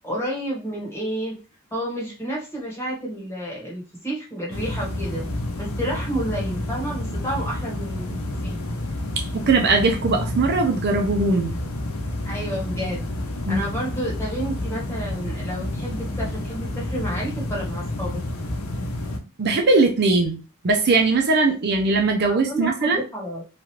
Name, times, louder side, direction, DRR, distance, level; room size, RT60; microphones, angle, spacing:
voice 1, 0.0-1.3 1.7-5.2 5.6-8.6 12.2-13.0 13.5-18.2 22.3-23.4, right 1 dB, 15° left, -4 dB, 1.2 m, -30 dB
sound 1, 4.5-19.2, left 1 dB, 85° left, 0.6 m, -29 dB
voice 2, 9.2-11.5 13.5-13.6 19.4-20.4 20.6-23.0, right 3 dB, 50° right, 3 dB, 0.5 m, -20 dB
2.9 x 2.4 x 3.0 m, 0.32 s
head